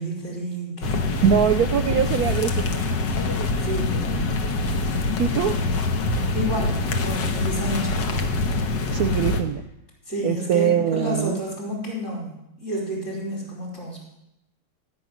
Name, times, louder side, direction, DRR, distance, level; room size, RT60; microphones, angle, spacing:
voice 1, 0.0-1.4 3.6-4.4 6.3-8.0 10.1-14.0, equal, 40° left, -3 dB, 5.1 m, -30 dB
sound 1, 0.8-9.4, left 2 dB, 75° left, 1.8 m, -24 dB
voice 2, 1.2-2.8 5.2-5.6 8.9-9.6 10.2-11.4, right 9 dB, 70° right, 11 dB, 0.9 m, -22 dB
15.5 x 6.1 x 9.0 m, 0.87 s
omnidirectional pair, 1.9 m